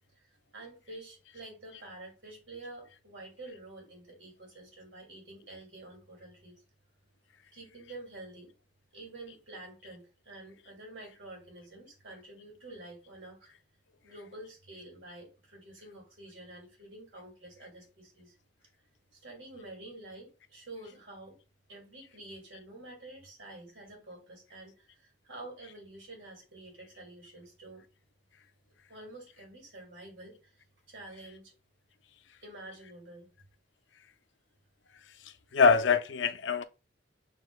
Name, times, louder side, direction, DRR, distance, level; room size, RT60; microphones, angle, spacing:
voice 1, 0.2-6.6 7.5-8.5 8.9-13.5 14.0-18.3 19.1-21.4 21.7-27.8 28.9-30.6 30.9-31.5 32.4-33.3, right 2 dB, 90° right, 2.4 m, -48 dB
voice 2, 35.2-36.6, left 5 dB, 70° left, 0.5 m, -24 dB
6.5 x 3.4 x 2.2 m
head